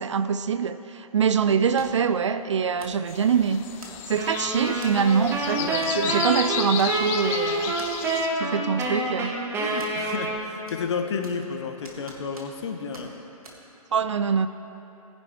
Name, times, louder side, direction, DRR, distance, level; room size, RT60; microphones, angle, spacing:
voice 1, 0.0-3.6 4.1-7.7 8.4-9.3 13.9-14.5, right 7 dB, 50° right, 12 dB, 0.4 m, -24 dB
sound 1, 1.8-2.1 2.8-3.1 3.8-4.2 4.8-5.1 5.8-6.0 6.3-6.4 6.8-7.3 7.8-7.9 8.8-9.3 9.8-10.4 10.7-11.5 11.8-12.7 12.9-13.1 13.4-13.6, right 2 dB, 70° right, 2.2 m, -46 dB
sound 2, 3.1-8.3, left 8 dB, 15° left, 0.4 m, -33 dB
sound 3, 4.2-10.7, right 2 dB, 10° right, 1.1 m, -28 dB
voice 2, 5.6-6.2 7.8-7.9 9.6-13.1, left 5 dB, 45° left, 5 dB, 1.0 m, -32 dB
19.0 x 10.5 x 3.3 m, 2.9 s
figure-of-eight pair, 125°, 19 cm